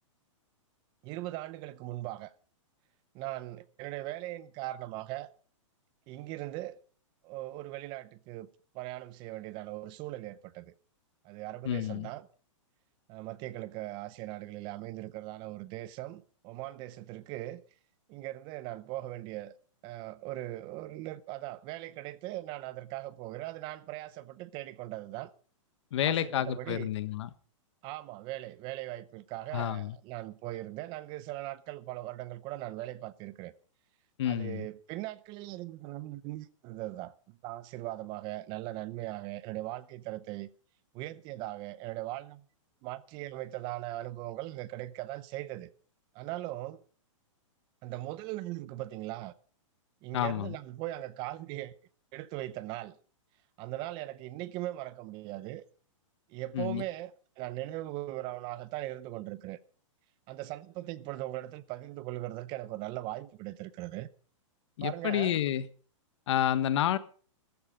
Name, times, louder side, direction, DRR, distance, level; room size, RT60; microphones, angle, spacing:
voice 1, 1.0-2.3 3.1-5.3 6.1-6.8 7.2-8.5 8.7-10.6 11.2-12.3 13.1-17.6 18.1-19.5 19.8-25.3 26.0-26.9 27.8-33.5 34.3-40.5 40.9-42.4 42.8-45.7 46.1-46.8 47.8-49.3 50.0-51.7 52.1-53.0 53.6-55.6 56.3-57.1 57.4-59.6 60.3-64.1 64.8-65.4, right 16 dB, 30° right, 0.7 m, -39 dB
voice 2, 11.6-12.1 25.9-27.3 29.5-30.0 34.2-34.7 50.1-50.6 56.5-56.8 64.8-65.6 66.3-67.0, left 11 dB, 60° left, 1.4 m, -29 dB
14.5 x 14.0 x 5.1 m
hypercardioid pair, 155°, 17 cm